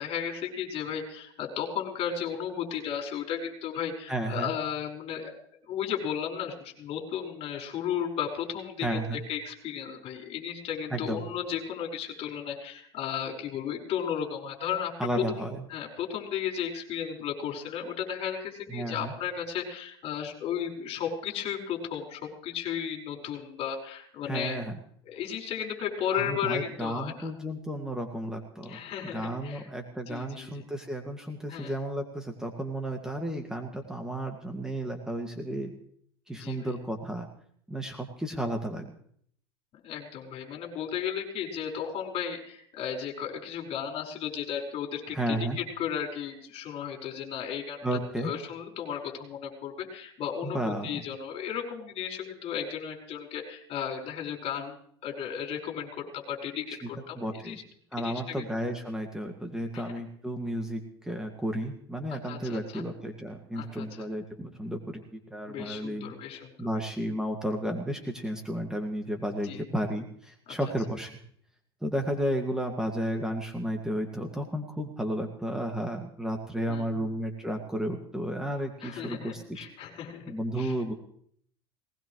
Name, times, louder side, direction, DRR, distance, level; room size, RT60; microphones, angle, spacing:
voice 1, 0.0-5.3 5.7-24.6 25.1-27.3 28.7-29.7 30.1-30.6 31.5-31.7 36.4-36.7 39.8-47.8 48.2-57.6 58.0-58.5 59.7-59.8 62.1-62.8 63.6-64.1 65.5-66.7 69.4-69.6 70.5-70.6 76.7-77.1 78.8-80.7, left 8 dB, 45° left, 2 dB, 5.1 m, -34 dB
voice 2, 4.1-4.5 8.8-9.2 10.9-11.2 15.0-15.6 18.7-19.1 24.3-24.8 26.1-35.7 36.3-37.3 37.7-38.9 45.1-45.6 47.8-48.3 50.4-51.0 56.7-56.9 57.1-57.6 57.9-66.1 66.6-71.2 71.8-79.7 80.3-80.9, right 1 dB, 5° right, 3 dB, 2.1 m, -33 dB
19.5 x 19.0 x 3.2 m, 0.63 s
hypercardioid pair, 85°, 14 cm